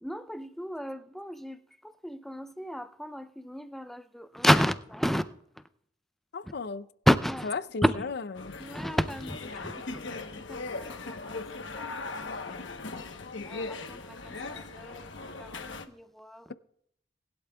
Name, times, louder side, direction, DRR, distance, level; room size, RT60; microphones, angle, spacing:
voice 1, 0.0-5.2 7.1-7.5 7.8-8.0 8.6-11.4 11.7-12.6 12.9-13.0 13.5-16.5, equal, ahead, 0.4 m, -31 dB
voice 2, 6.3-6.9 7.4-8.5, left 4 dB, 60° left, 0.5 m, -35 dB
sound 1, 8.3-15.9, left 3 dB, 85° left, 1.0 m, -39 dB
20.5 x 11.5 x 2.3 m
head